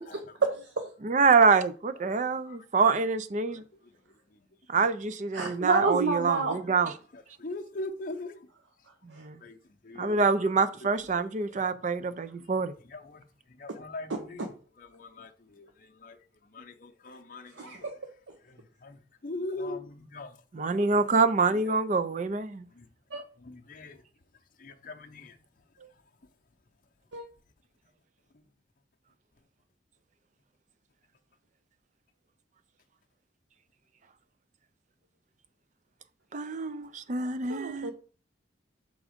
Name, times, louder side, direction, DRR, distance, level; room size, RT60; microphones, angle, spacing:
voice 1, 0.0-0.8 5.3-6.6 9.1-9.3 13.7-13.8 14.1-14.5 17.5-17.9 23.1-23.2 25.8-25.9 27.1-27.2 37.5-37.9, right 4 dB, 80° right, 0.8 m, -30 dB
voice 2, 1.0-3.6 4.7-6.9 9.0-9.4 10.0-12.7 20.5-22.7 36.3-37.9, right 4 dB, 40° right, 0.4 m, -26 dB
voice 3, 7.1-8.4 9.4-9.6 9.8-10.5 11.2-11.6 12.9-13.2 13.6-14.5 14.8-16.2 16.5-17.9 18.5-20.3 21.6-21.7 22.8-22.9 23.5-24.0 24.6-25.4, left 2 dB, 45° left, 0.7 m, -41 dB
6.2 x 3.6 x 5.0 m
head